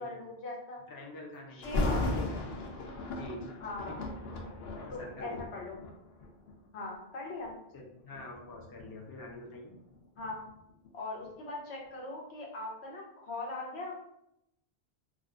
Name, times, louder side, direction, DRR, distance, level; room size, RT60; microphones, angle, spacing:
voice 1, 0.0-0.8 1.5-2.4 3.6-4.0 4.9-5.7 6.7-7.5 10.2-10.4 10.9-13.9, left 2 dB, 90° left, -2 dB, 1.1 m, -40 dB
voice 2, 0.9-2.4 3.2-3.6 3.9-4.3 4.7-5.4 7.7-9.7, left 2 dB, 30° left, -1 dB, 0.4 m, -46 dB
Thunder, 1.6-6.6 7.3-7.5 8.1-10.9 11.3-11.4, left 2 dB, 70° left, 0.8 m, -36 dB
2.4 x 2.3 x 3.6 m, 0.80 s
omnidirectional pair, 1.1 m